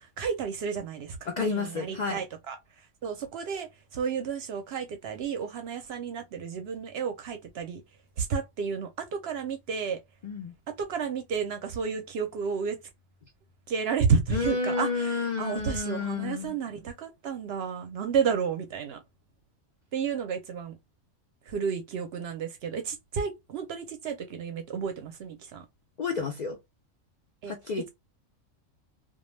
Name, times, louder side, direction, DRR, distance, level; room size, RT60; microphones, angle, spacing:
voice 1, 0.0-2.6 3.0-7.8 8.2-10.0 10.7-12.8 13.7-19.0 19.9-20.8 21.5-25.7 27.4-27.5, right 6 dB, 65° right, 0.7 m, -31 dB
voice 2, 1.3-2.2 10.2-10.5 14.3-16.6 26.0-26.6 27.5-27.9, left 4 dB, 90° left, 0.3 m, -30 dB
2.2 x 2.2 x 3.1 m
omnidirectional pair, 1.4 m